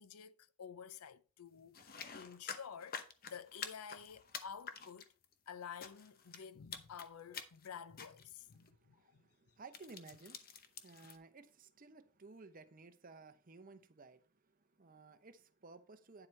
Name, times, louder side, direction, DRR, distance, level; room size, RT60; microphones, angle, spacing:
voice 1, 0.0-5.1 5.5-9.3, left 7 dB, 80° left, 0.5 m, -51 dB
sound 1, 1.7-5.3 5.8-6.4 6.7-7.1 7.3-7.7 8.0-8.2 8.5-8.7 9.7-11.2, left 6 dB, 40° left, 0.8 m, -48 dB
voice 2, 8.6-16.3, right 3 dB, 40° right, 0.8 m, -57 dB
9.8 x 7.3 x 3.3 m
head